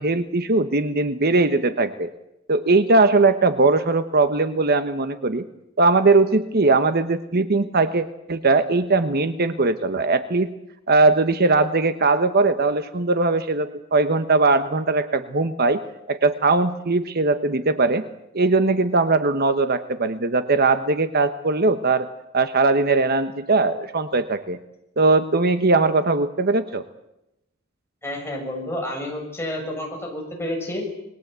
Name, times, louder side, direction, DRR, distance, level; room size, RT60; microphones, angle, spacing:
voice 1, 0.0-2.1 2.5-5.4 5.8-10.5 10.9-15.8 16.1-18.0 18.3-22.1 22.3-24.6 25.0-26.8, right 3 dB, 50° right, 10 dB, 1.1 m, -20 dB
voice 2, 28.0-30.8, left 1 dB, 10° left, 0 dB, 7.2 m, -30 dB
27.5 x 21.0 x 8.2 m, 0.88 s
head